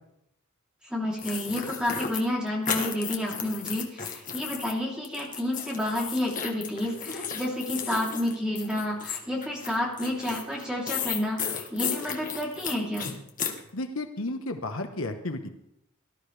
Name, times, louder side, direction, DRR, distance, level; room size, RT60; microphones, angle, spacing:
voice 1, 0.8-13.1, left 1 dB, 5° right, -3 dB, 3.3 m, -30 dB
sound 1, 1.2-4.7 5.0-13.6, left 7 dB, 40° left, 1.5 m, -34 dB
voice 2, 13.7-15.5, left 2 dB, 75° left, 6 dB, 1.2 m, -32 dB
18.0 x 12.0 x 3.4 m, 0.78 s
head